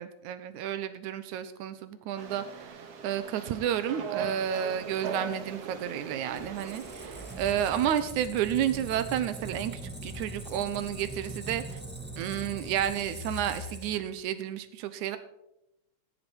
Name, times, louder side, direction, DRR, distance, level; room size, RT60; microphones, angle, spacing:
voice 1, 0.0-2.4 3.0-9.7 10.0-11.8 12.2-15.2, right 10 dB, 85° right, 12 dB, 2.3 m, -31 dB
sound 1, 2.2-7.9, right 6 dB, 60° right, 2.3 m, -40 dB
Squeak, 6.4-14.2, right 1 dB, 15° right, 0.4 m, -41 dB
17.0 x 8.8 x 4.5 m, 0.85 s
omnidirectional pair, 3.4 m